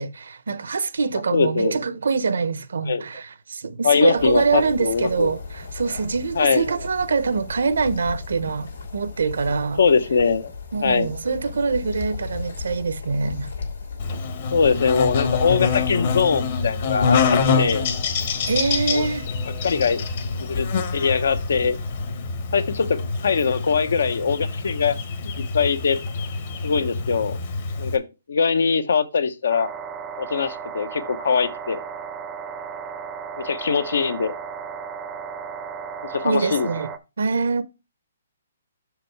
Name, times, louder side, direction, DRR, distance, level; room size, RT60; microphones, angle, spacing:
voice 1, 0.0-9.8 10.7-13.5 18.5-19.3 36.2-36.9 37.2-37.6, right 4 dB, 85° right, 0.8 m, -24 dB
voice 2, 1.3-1.8 2.8-3.0 3.8-5.3 6.4-6.6 9.8-10.5 10.8-11.1 14.5-17.8 18.9-19.1 19.6-20.0 20.4-21.8 22.5-25.0 25.2-26.0 26.6-27.4 27.8-28.0 28.3-29.7 30.2-31.8 33.4-34.3 36.1-36.7, left 5 dB, 75° left, 0.9 m, -22 dB
sound 1, 4.2-22.1, left 4 dB, 90° left, 2.6 m, -36 dB
Buzz, 14.0-28.0, left 4 dB, 45° left, 1.2 m, -26 dB
sound 2, 29.5-37.0, right 6 dB, 10° right, 0.5 m, -35 dB
6.4 x 5.0 x 4.6 m
hypercardioid pair, 165°, 0 cm